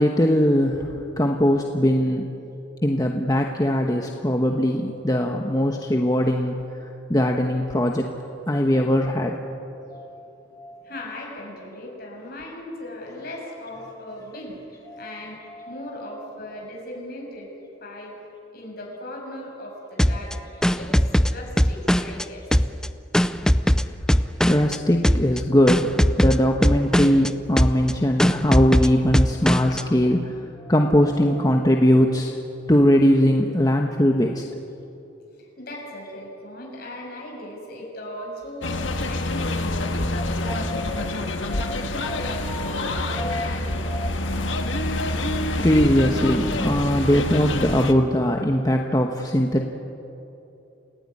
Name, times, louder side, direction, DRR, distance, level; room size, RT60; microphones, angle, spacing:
voice 1, 0.0-2.3 2.8-8.1 8.5-9.4 9.9-10.8 14.9-15.1 15.5-16.0 24.5-25.9 26.2-30.3 30.6-32.3 32.7-34.4 40.5-40.8 41.5-41.7 42.1-42.2 42.5-42.7 43.2-43.5 43.8-44.1 45.6-49.7, equal, 20° left, 2 dB, 1.1 m, -21 dB
voice 2, 10.8-14.6 15.0-15.4 15.7-17.5 17.8-18.2 18.5-20.5 20.7-22.5 35.4-44.1, left 1 dB, 55° left, -1 dB, 7.0 m, -37 dB
sound 1, 20.0-22.2 22.5-24.8 25.0-25.4 25.7-27.3 27.6-27.9 28.2-29.8, equal, 5° left, 0.5 m, -20 dB
sound 2, 38.6-47.9, left 1 dB, 85° left, 1.7 m, -27 dB
28.5 x 16.5 x 9.9 m, 2.9 s
head